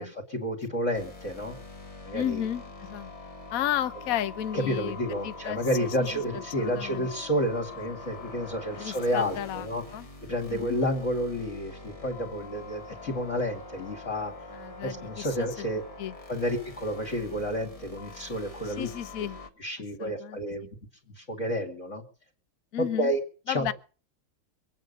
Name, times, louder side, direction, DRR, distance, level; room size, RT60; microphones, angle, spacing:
voice 1, 0.0-1.6 2.1-2.5 4.5-9.8 10.3-14.3 14.8-15.8 16.3-18.9 19.2-19.3 19.6-20.7 21.1-22.0 23.0-23.2 23.5-23.7, equal, 35° left, 2.4 m, -30 dB
sound 1, 0.9-19.5, left 3 dB, 20° left, 1.2 m, -44 dB
voice 2, 2.1-3.1 3.5-5.0 5.2-7.1 8.8-9.7 9.9-10.1 10.5-10.8 14.5-15.6 16.0-16.2 18.6-19.4 20.0-20.7 22.7-23.1 23.5-23.7, left 11 dB, 55° left, 1.0 m, -33 dB
23.5 x 9.1 x 5.3 m
omnidirectional pair, 2.4 m